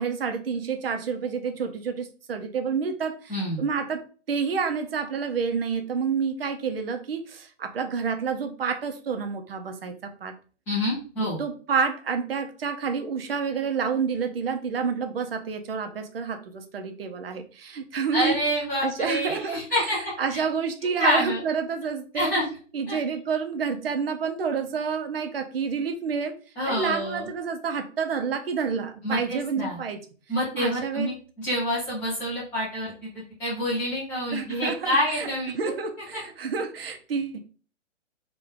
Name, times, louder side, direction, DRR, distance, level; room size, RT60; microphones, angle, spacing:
voice 1, 0.0-4.0 4.3-10.3 11.2-18.4 18.8-22.3 22.7-26.3 26.6-30.0 30.5-31.1 34.3-35.3 35.6-37.4, right 6 dB, 50° right, 7 dB, 0.7 m, -29 dB
voice 2, 3.3-3.6 10.7-11.4 18.1-20.4 21.0-21.4 22.1-22.4 22.9-23.0 26.6-27.3 29.0-29.8 30.3-35.6 36.1-36.2, equal, 5° left, -8 dB, 0.7 m, -27 dB
3.6 x 2.4 x 3.7 m, 0.38 s
hypercardioid pair, 160°, 37 cm